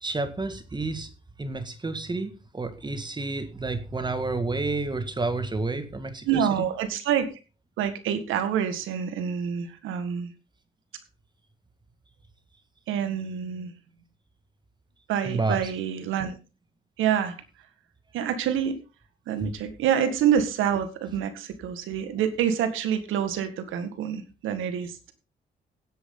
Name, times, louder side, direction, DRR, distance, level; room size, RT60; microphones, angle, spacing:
voice 1, 0.0-1.1 1.4-6.6 15.2-15.7 19.4-19.5, right 3 dB, 20° right, 10 dB, 1.9 m, -30 dB
voice 2, 6.3-7.3 7.8-10.3 12.9-13.7 15.1-16.3 17.0-17.4 18.1-18.8 19.3-25.1, right 8 dB, 85° right, 10 dB, 1.8 m, -27 dB
17.0 x 8.2 x 3.9 m, 0.31 s
cardioid pair, 90°, 20 cm